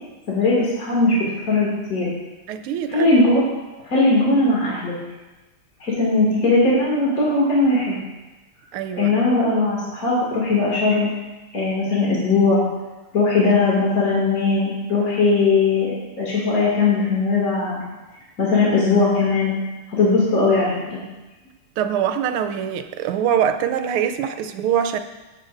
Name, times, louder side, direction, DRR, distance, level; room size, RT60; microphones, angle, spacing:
voice 1, 0.3-1.2 1.5-2.1 2.9-3.4 3.9-5.0 5.8-8.0 9.0-11.1 11.5-12.7 13.1-15.9 16.2-17.8 18.4-19.5 19.9-21.0, left 3 dB, 40° left, -6 dB, 2.6 m, -19 dB
voice 2, 2.5-3.1 8.7-9.1 21.8-25.0, right 9 dB, 85° right, 9 dB, 1.5 m, -23 dB
17.0 x 8.0 x 2.6 m, 1.1 s
omnidirectional pair, 2.4 m